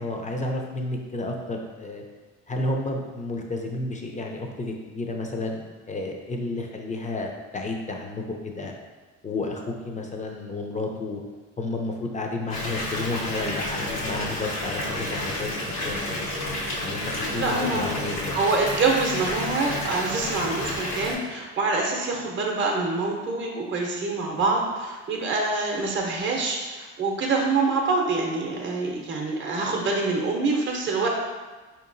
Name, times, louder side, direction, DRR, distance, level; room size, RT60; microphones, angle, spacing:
voice 1, 0.0-2.0 2.5-8.7 9.2-11.2 11.6-16.3 16.8-18.4, left 2 dB, 25° left, 2 dB, 0.5 m, -31 dB
Water tap faucet / Bathtub (filling or washing) / Fill (with liquid), 12.5-21.1, left 1 dB, 85° left, 1.3 m, -30 dB
voice 2, 17.3-17.9 18.3-31.1, right 3 dB, 40° right, 0 dB, 0.7 m, -25 dB
4.6 x 2.9 x 2.6 m, 1.3 s
cardioid pair, 90°, 30 cm